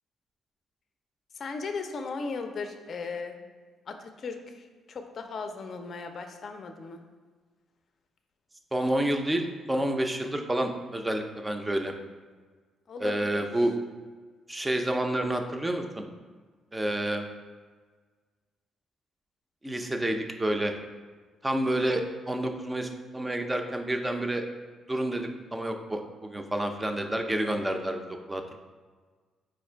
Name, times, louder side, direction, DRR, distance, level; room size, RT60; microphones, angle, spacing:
voice 1, 1.3-3.5 3.9-7.0 12.9-13.5, left 4 dB, 50° left, 6 dB, 0.5 m, -37 dB
voice 2, 8.7-11.9 13.0-13.7 14.5-16.0 16.7-17.2 19.6-20.7 21.4-24.4 24.9-28.6, right 1 dB, 15° right, 4 dB, 0.5 m, -29 dB
4.7 x 2.5 x 4.4 m, 1.5 s
cardioid pair, 90°, 0 cm